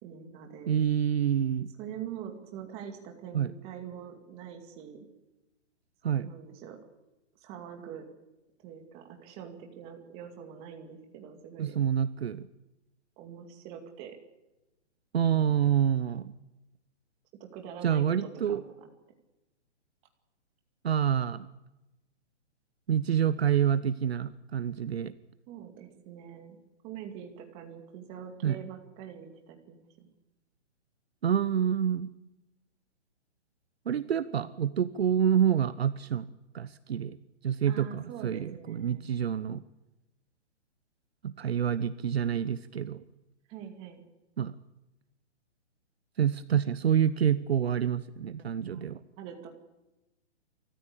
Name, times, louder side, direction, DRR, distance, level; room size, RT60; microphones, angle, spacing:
voice 1, 0.0-0.7 1.8-5.1 6.0-6.8 7.4-8.0 8.6-11.8 13.2-14.2 17.4-18.9 25.5-26.6 26.8-30.1 37.7-39.1 43.5-44.0 48.6-48.9 49.2-49.5, right 8 dB, 15° right, 4 dB, 2.4 m, -44 dB
voice 2, 0.7-1.7 3.3-3.5 6.0-6.3 11.6-12.5 15.1-16.3 17.8-18.6 20.8-21.5 22.9-25.1 28.4-28.6 31.2-32.1 33.9-36.3 36.5-37.2 37.4-39.6 41.2-43.0 44.4-44.5 46.2-49.0, right 9 dB, 60° right, 15 dB, 1.0 m, -27 dB
26.0 x 14.5 x 8.6 m, 1.0 s
hypercardioid pair, 170°, 35 cm